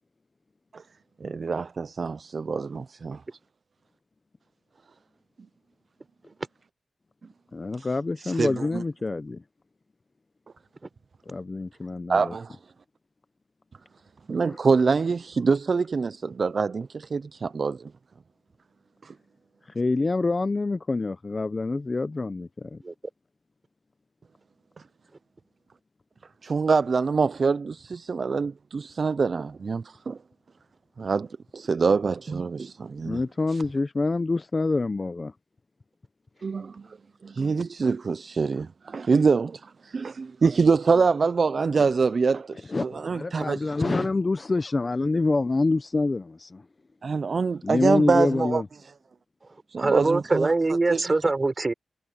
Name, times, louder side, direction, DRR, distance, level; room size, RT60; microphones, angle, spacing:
voice 1, 1.2-3.2 7.8-7.9 8.2-8.8 12.1-12.6 14.3-17.9 19.0-19.1 26.4-30.2 31.0-31.3 31.5-33.2 33.5-33.6 36.4-37.0 37.2-44.1 47.0-48.6 49.7-50.5 50.9-51.0, right 5 dB, 50° right, 0.4 m, -25 dB
voice 2, 7.5-9.4 11.3-12.3 14.5-14.6 19.7-22.8 33.0-35.3 42.7-46.6 47.6-48.7, left 3 dB, 30° left, 0.5 m, -26 dB
voice 3, 49.8-51.7, right 3 dB, 30° right, 4.0 m, -23 dB
wide cardioid pair, 130°, 0 cm